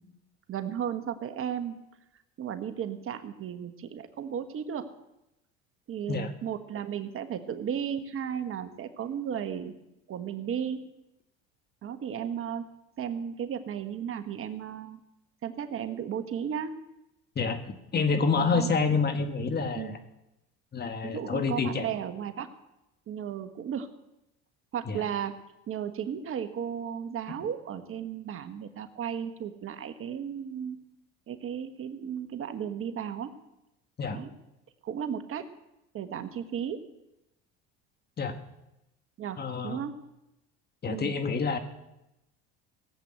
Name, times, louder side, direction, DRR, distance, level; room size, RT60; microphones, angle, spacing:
voice 1, 0.5-1.7 2.4-4.9 5.9-9.7 10.1-10.8 11.8-12.6 13.0-15.0 15.4-16.8 18.5-18.7 19.7-20.0 21.0-22.5 23.1-23.9 24.7-25.3 25.7-30.8 31.3-33.3 34.1-34.3 34.8-35.5 35.9-36.8 39.2-40.0 40.9-41.1, right 8 dB, 45° right, 9 dB, 1.4 m, -34 dB
voice 2, 17.3-20.0 20.7-21.9 24.9-25.0 34.0-34.2 38.2-38.4 39.4-39.8 40.8-41.6, left 4 dB, 30° left, 7 dB, 1.8 m, -28 dB
17.5 x 7.9 x 7.9 m, 0.92 s
supercardioid pair, 90°, 31 cm